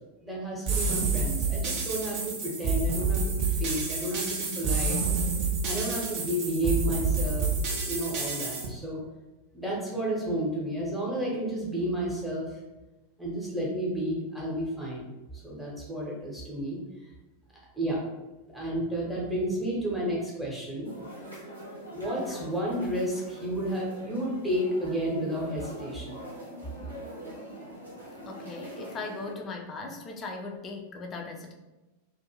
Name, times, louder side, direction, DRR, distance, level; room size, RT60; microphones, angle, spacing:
voice 1, 0.2-5.0 5.6-7.5 7.8-9.0 9.5-12.5 13.2-15.0 15.3-16.8 17.7-18.0 18.5-20.9 21.9-26.2, right 1 dB, ahead, -5 dB, 0.8 m, -31 dB
sound 1, 0.7-8.7, right 4 dB, 40° right, 0.5 m, -28 dB
sound 2, 20.8-29.3, equal, 85° right, 0.8 m, -43 dB
voice 2, 28.3-31.5, left 3 dB, 25° left, 2 dB, 0.4 m, -39 dB
2.5 x 2.1 x 2.9 m, 1.1 s
figure-of-eight pair, 90°, 0 cm